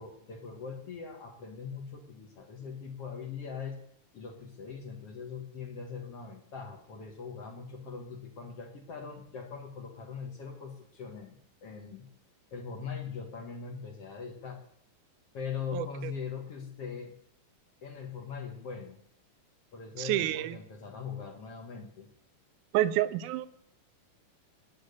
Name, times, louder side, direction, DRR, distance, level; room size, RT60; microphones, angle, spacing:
voice 1, 0.0-3.8 4.1-12.1 12.5-14.6 15.3-17.1 17.8-19.0 19.7-22.1, left 6 dB, 50° left, 2 dB, 2.5 m, -41 dB
voice 2, 15.7-16.1 20.0-20.6 22.7-23.5, right 14 dB, 80° right, 13 dB, 2.2 m, -29 dB
19.0 x 6.5 x 8.5 m, 0.72 s
omnidirectional pair, 3.7 m